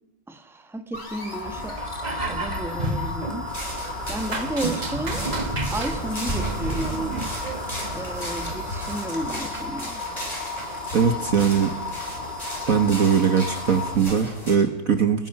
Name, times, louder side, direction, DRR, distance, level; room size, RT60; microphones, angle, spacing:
voice 1, 0.3-1.8 2.3-3.5 4.1-5.2 5.7-7.3 7.9-10.0, right 1 dB, ahead, 7 dB, 1.6 m, -32 dB
sound 1, 0.9-14.0, left 2 dB, 45° left, 3.9 m, -34 dB
sound 2, 1.4-9.0, right 2 dB, 25° right, 1.5 m, -31 dB
sound 3, 3.4-14.5, left 1 dB, 20° left, 8.3 m, -36 dB
voice 2, 10.9-11.7 12.7-15.3, right 7 dB, 45° right, 8 dB, 1.5 m, -21 dB
29.0 x 22.0 x 5.9 m, 0.98 s
omnidirectional pair, 2.2 m